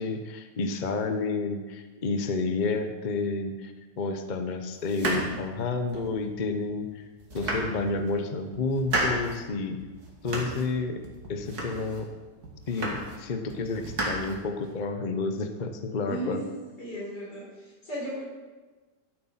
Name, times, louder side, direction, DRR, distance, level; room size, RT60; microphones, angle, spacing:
voice 1, 0.0-7.0 7.3-9.8 10.2-11.0 11.3-12.1 12.7-16.4, left 3 dB, 40° left, 7 dB, 0.7 m, -30 dB
sound 1, 4.8-6.2 6.7-6.8 7.2-8.1 8.5-9.4 9.8-10.7 11.0-12.0 12.4-13.2 13.5-14.8, right 1 dB, 60° right, 2.6 m, -33 dB
voice 2, 16.1-16.4 16.8-18.2, right 1 dB, 65° left, -5 dB, 5.7 m, -36 dB
12.5 x 8.5 x 5.7 m, 1.3 s
omnidirectional pair, 1.9 m